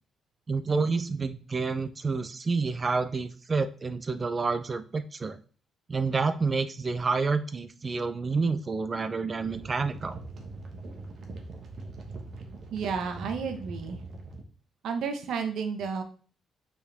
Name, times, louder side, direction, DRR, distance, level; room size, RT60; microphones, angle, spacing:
voice 1, 0.5-5.4 5.9-10.2, right 4 dB, 25° right, 12 dB, 0.5 m, -29 dB
sound 1, 9.4-14.4, right 3 dB, 45° right, 1.3 m, -42 dB
voice 2, 12.7-14.0 14.8-16.0, right 6 dB, 70° right, 6 dB, 1.2 m, -31 dB
8.5 x 4.6 x 3.5 m, 0.41 s
cardioid pair, 160°, 0 cm